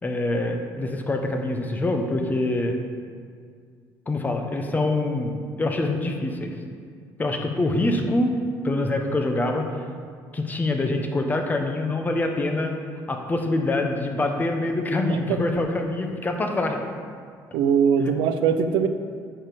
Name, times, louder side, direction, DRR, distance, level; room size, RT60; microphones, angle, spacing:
voice 1, 0.0-2.8 4.1-6.6 7.2-8.3 8.6-9.7 10.3-12.7 13.1-16.8, left 2 dB, 20° left, 3 dB, 1.1 m, -25 dB
voice 2, 17.5-18.9, right 7 dB, 85° right, 8 dB, 0.6 m, -21 dB
10.0 x 4.3 x 6.9 m, 2.1 s
cardioid pair, 110°, 8 cm